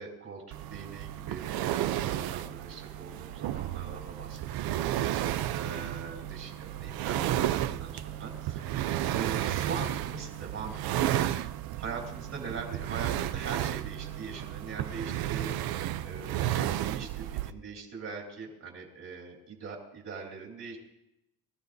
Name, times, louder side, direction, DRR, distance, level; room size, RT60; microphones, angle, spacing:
voice 1, 0.0-11.5 11.8-20.8, right 5 dB, 45° right, -1 dB, 3.5 m, -42 dB
sound 1, 0.5-17.5, right 12 dB, 80° right, 0.6 m, -32 dB
24.0 x 14.5 x 2.7 m, 0.88 s
cardioid pair, 165°, 36 cm